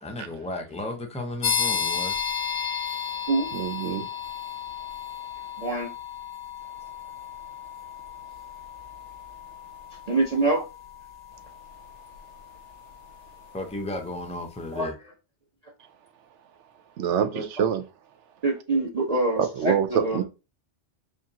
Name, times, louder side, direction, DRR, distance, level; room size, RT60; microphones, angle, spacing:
voice 1, 0.0-2.2 13.5-14.9 19.0-19.1, left 2 dB, 10° left, 0.4 m, -34 dB
sound 1, 1.4-13.9, left 7 dB, 70° left, 1.0 m, -34 dB
voice 2, 3.5-4.1 17.0-17.8 19.4-20.2, right 8 dB, 80° right, 0.9 m, -25 dB
voice 3, 5.6-5.9 10.1-10.6 14.7-14.9 17.3-17.4 18.4-20.2, right 2 dB, 35° right, 0.9 m, -25 dB
5.1 x 2.5 x 2.8 m
omnidirectional pair, 1.2 m